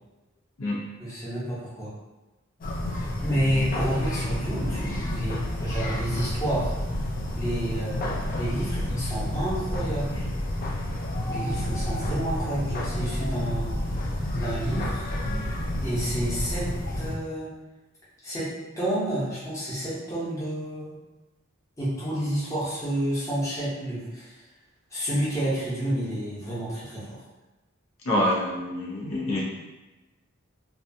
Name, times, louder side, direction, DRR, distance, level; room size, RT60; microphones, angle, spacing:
voice 1, 1.0-1.9 3.2-6.8 7.3-10.2 11.3-13.7 14.3-15.1 15.8-16.7 17.0-17.5 18.2-20.9 21.8-24.3 24.9-27.2, right 1 dB, 15° left, -9 dB, 0.7 m, -30 dB
sound 1, 2.6-17.1, left 1 dB, 40° left, 0.4 m, -30 dB
voice 2, 28.0-29.4, left 1 dB, 85° left, -5 dB, 0.7 m, -26 dB
2.6 x 2.3 x 2.6 m, 1.1 s
head